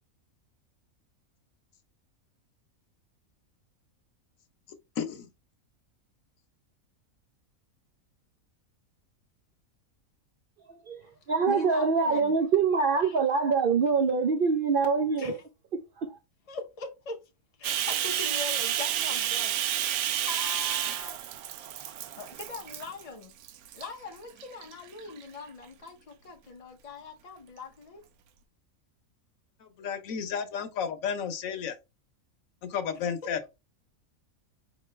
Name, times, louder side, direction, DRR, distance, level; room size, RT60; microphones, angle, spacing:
voice 1, 5.0-5.3 29.6-31.8 32.6-33.4, left 7 dB, 70° left, 1.2 m, -32 dB
voice 2, 10.7-15.4 16.0-16.2, right 5 dB, 65° right, 0.5 m, -25 dB
voice 3, 11.5-12.3 13.0-13.2 15.2-15.4 16.5-17.2 17.6-19.8 20.2-21.2 22.2-23.3 23.7-28.0 33.2-33.3, left 4 dB, 50° left, 0.4 m, -41 dB
Bathtub (filling or washing), 17.6-23.0 23.4-23.9 24.4-25.2, right 11 dB, 85° right, 1.1 m, -30 dB
4.7 x 3.0 x 3.1 m
omnidirectional pair, 1.5 m